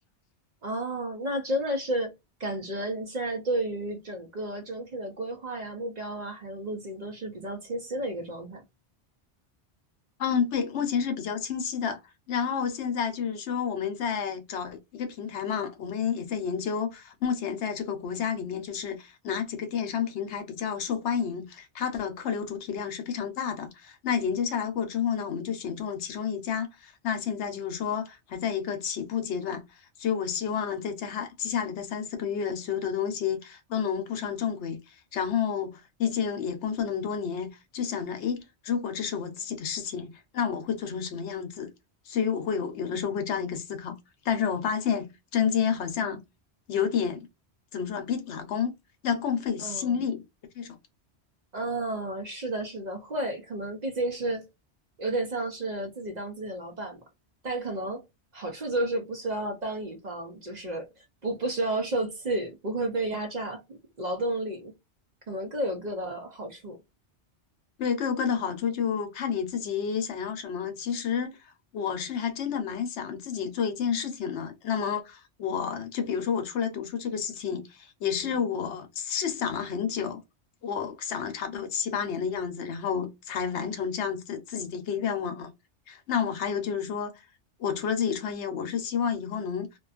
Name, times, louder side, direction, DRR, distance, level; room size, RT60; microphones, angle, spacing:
voice 1, 0.6-2.1 2.4-8.6 46.0-46.2 49.6-50.0 51.5-54.4 55.0-57.0 57.4-58.0 58.3-64.7 65.3-66.8 78.2-78.4 83.3-83.5, right 1 dB, 45° right, 0.6 m, -32 dB
voice 2, 10.2-12.0 12.3-29.6 30.0-41.7 42.1-44.0 44.2-46.2 46.7-47.3 47.7-48.7 49.0-50.2 50.6-50.8 67.8-71.4 71.7-80.2 80.6-85.5 85.9-87.2 87.6-89.7, left 7 dB, 80° left, 1.0 m, -30 dB
2.5 x 2.2 x 2.4 m
omnidirectional pair, 1.2 m